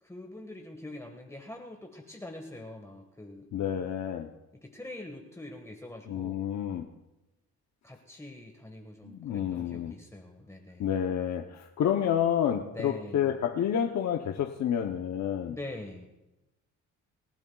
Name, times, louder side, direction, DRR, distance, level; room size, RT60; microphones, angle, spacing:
voice 1, 0.0-3.8 4.6-6.5 7.8-10.9 12.7-13.4 15.5-16.1, left 2 dB, 10° left, 1.5 m, -44 dB
voice 2, 3.5-4.3 6.1-6.9 9.0-9.9 10.8-15.6, left 9 dB, 65° left, 0.8 m, -29 dB
27.0 x 12.5 x 2.4 m
cardioid pair, 90°, 30 cm